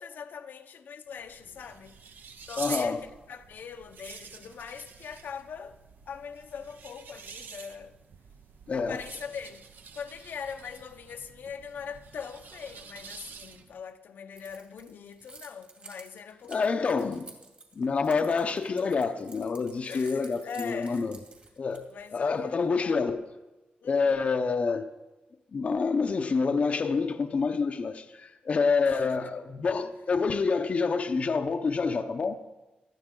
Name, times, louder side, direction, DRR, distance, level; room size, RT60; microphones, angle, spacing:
voice 1, 0.0-2.0 2.5-5.8 6.1-7.9 8.7-9.7 9.9-17.0 19.9-21.1 21.9-23.0 23.8-24.2 28.8-29.4, left 6 dB, 75° left, 0.8 m, -42 dB
sound 1, 1.1-13.8, right 6 dB, 70° right, 0.8 m, -47 dB
voice 2, 2.6-3.0 8.7-9.0 16.5-17.3 17.8-21.2 21.6-21.9 22.1-23.3 23.8-24.9 25.5-32.4, left 4 dB, 40° left, 0.6 m, -27 dB
Keys jangling, 14.4-22.1, right 3 dB, 40° right, 2.3 m, -51 dB
18.5 x 12.0 x 3.8 m
wide cardioid pair, 140°, 3 cm